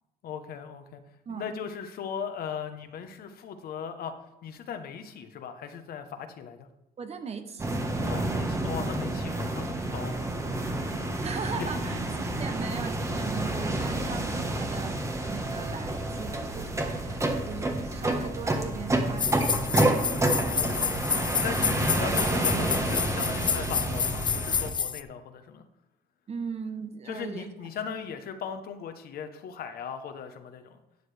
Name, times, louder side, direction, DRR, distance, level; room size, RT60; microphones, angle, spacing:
voice 1, 0.2-1.0 1.3-4.2 4.4-6.7 8.0-10.2 10.6-11.2 11.6-11.7 20.4-20.9 21.4-25.6 27.1-30.8, left 7 dB, 65° left, 8 dB, 1.0 m, -38 dB
voice 2, 7.0-7.8 11.2-20.6 21.6-21.8 26.3-27.5, right 5 dB, 40° right, 8 dB, 1.0 m, -39 dB
sound 1, 7.6-24.7, right 1 dB, 15° right, 1.2 m, -29 dB
sound 2, 19.2-25.0, left 7 dB, 30° left, 0.4 m, -29 dB
12.5 x 8.2 x 3.4 m, 0.90 s
cardioid pair, 110°, 17 cm